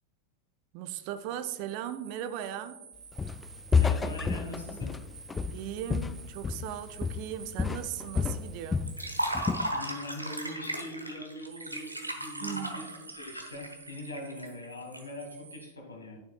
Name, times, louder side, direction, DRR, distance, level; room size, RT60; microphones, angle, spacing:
voice 1, 0.7-2.8 5.5-9.0 12.4-12.8, right 10 dB, 45° right, 0.6 m, -38 dB
sound 1, 1.3-10.5 11.4-15.7, right 7 dB, 65° right, 1.3 m, -51 dB
Walk footsteps, 3.2-3.5 3.7-6.8 7.0-7.3 7.6-9.0 9.3-9.7, left 5 dB, 15° left, 0.3 m, -29 dB
voice 2, 3.7-4.9 9.7-12.9 13.2-16.2, left 1 dB, 75° left, 2.1 m, -41 dB
Liquid, 8.9-15.0, right 1 dB, 85° right, 1.2 m, -36 dB
11.5 x 9.5 x 2.3 m
figure-of-eight pair, 90°, 0 cm